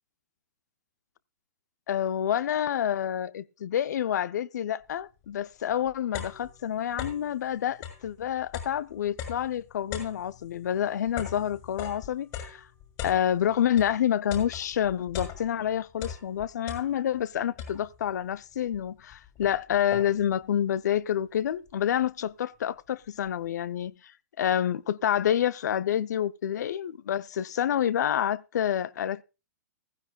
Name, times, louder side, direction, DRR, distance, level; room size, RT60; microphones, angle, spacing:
voice 1, 1.9-12.6 13.0-23.9 24.4-29.2, left 10 dB, 75° left, 0.7 m, -28 dB
sound 1, 5.2-5.3 5.7-7.4 7.7-14.0 14.3-15.7 16.0-17.2 17.6-18.1 18.7-18.8 19.1-20.4, left 8 dB, 40° left, 6.2 m, -40 dB
16.0 x 15.5 x 2.4 m
hypercardioid pair, 125°, 9 cm